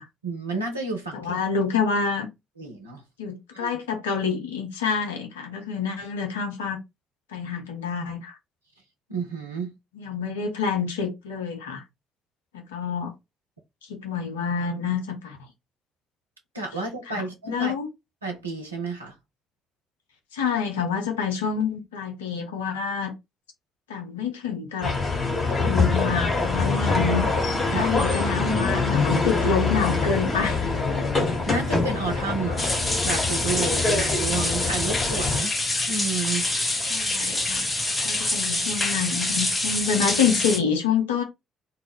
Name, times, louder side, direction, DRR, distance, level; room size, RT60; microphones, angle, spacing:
voice 1, 0.2-1.3 2.6-3.0 3.5-3.7 9.1-9.7 16.5-17.7 18.2-19.1 25.6-25.9 27.7-27.9 31.5-32.7 33.0-35.5 35.9-36.5, right 3 dB, 85° right, 0.5 m, -31 dB
voice 2, 1.1-2.3 3.2-6.8 7.3-8.4 9.9-11.8 12.5-13.1 13.8-15.4 17.1-17.9 20.3-23.1 23.9-25.0 25.5-27.3 27.7-30.7 36.9-37.7 38.0-41.2, left 6 dB, 75° left, 0.5 m, -27 dB
sound 1, 24.8-35.4, left 3 dB, 35° left, 1.1 m, -24 dB
sound 2, 32.6-40.6, left 2 dB, 20° left, 0.7 m, -26 dB
2.1 x 2.0 x 3.4 m
figure-of-eight pair, 45°, 0 cm